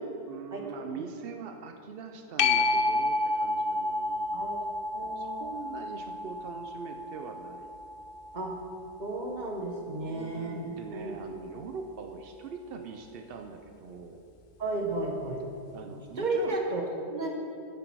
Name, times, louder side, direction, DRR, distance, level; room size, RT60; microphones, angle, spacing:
voice 1, 0.0-4.6 5.0-7.7 10.1-14.2 15.7-16.6, right 5 dB, 75° right, 5 dB, 0.5 m, -42 dB
voice 2, 0.5-1.0 4.3-4.7 4.9-5.4 8.3-8.5 9.0-10.6 10.9-11.1 14.6-15.4 16.2-17.3, right 2 dB, 30° right, 0 dB, 1.2 m, -33 dB
sound 1, 2.4-9.5 15.1-15.2, left 2 dB, 85° left, 0.4 m, -31 dB
10.5 x 7.8 x 4.6 m, 2.6 s
omnidirectional pair, 1.7 m